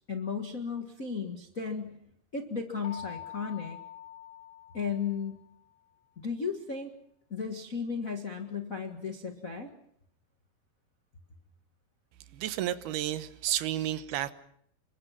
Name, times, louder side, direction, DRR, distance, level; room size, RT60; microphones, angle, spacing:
voice 1, 0.0-2.0 2.3-3.8 4.7-5.4 6.2-6.9 7.3-9.7, left 5 dB, 50° left, 3 dB, 0.9 m, -35 dB
sound 1, 2.8-5.6, left 11 dB, 80° left, 6.1 m, -45 dB
voice 2, 12.3-14.3, right 13 dB, 80° right, 12 dB, 3.0 m, -31 dB
28.0 x 24.0 x 5.8 m, 0.69 s
omnidirectional pair, 4.4 m